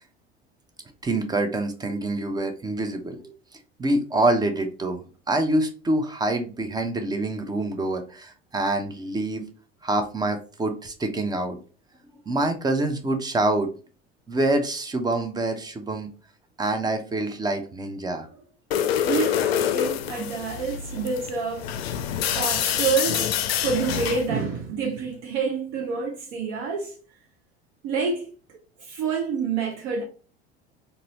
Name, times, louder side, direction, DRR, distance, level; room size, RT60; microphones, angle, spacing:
voice 1, 1.0-3.2 3.8-5.0 5.3-9.4 9.8-11.6 12.1-13.7 14.3-16.1 16.6-18.3, right 2 dB, 10° right, 0.6 m, -26 dB
sound 1, 18.7-24.3, left 10 dB, 65° left, 0.5 m, -26 dB
voice 2, 19.0-21.7 22.3-26.9 27.8-30.0, right 5 dB, 50° right, 0.8 m, -28 dB
4.0 x 2.6 x 2.9 m
figure-of-eight pair, 70°, 32 cm